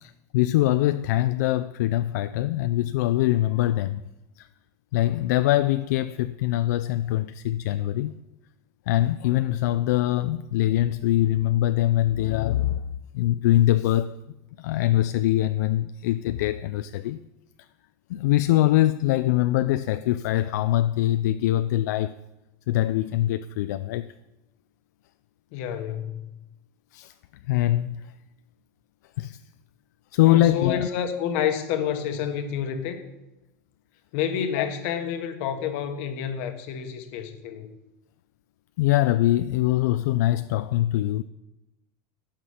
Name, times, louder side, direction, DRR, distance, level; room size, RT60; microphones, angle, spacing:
voice 1, 0.0-4.0 4.4-4.5 4.9-8.1 8.9-12.8 13.1-14.2 14.6-17.2 18.1-22.1 22.7-24.0 26.9-27.1 27.5-28.0 29.2-29.4 30.1-30.9 34.6-34.7 38.8-41.2, left 14 dB, 65° left, 0.4 m, -23 dB
voice 2, 25.5-26.3 30.3-33.0 34.1-37.7, left 8 dB, 45° left, 1.1 m, -29 dB
15.0 x 5.9 x 4.9 m
supercardioid pair, 175°, 10 cm